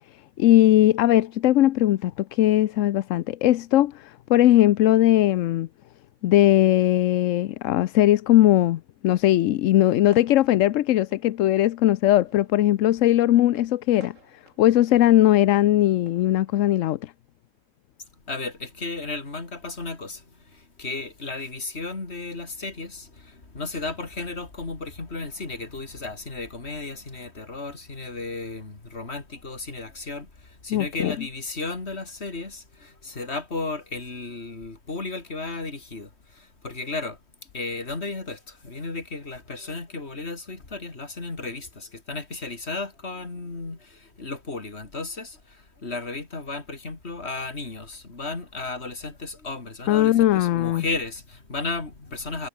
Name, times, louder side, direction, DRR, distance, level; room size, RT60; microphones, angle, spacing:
voice 1, 0.4-5.7 6.2-14.1 14.6-17.1 30.7-31.1 49.9-50.8, left 13 dB, 75° left, 1.0 m, -19 dB
sound 1, 10.0-16.8, right 2 dB, 70° right, 6.7 m, -55 dB
voice 2, 18.2-52.5, left 3 dB, 55° left, 3.3 m, -34 dB
omnidirectional pair, 1.4 m